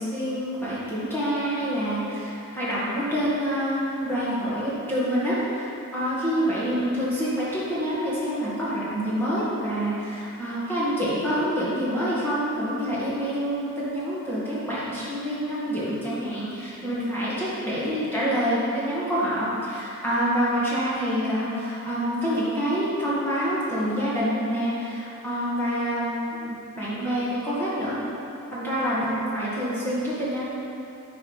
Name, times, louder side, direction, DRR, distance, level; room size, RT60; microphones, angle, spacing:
voice 1, 0.0-28.0 28.5-30.5, equal, 10° left, -10 dB, 1.9 m, -27 dB
10.5 x 4.9 x 5.6 m, 2.8 s
head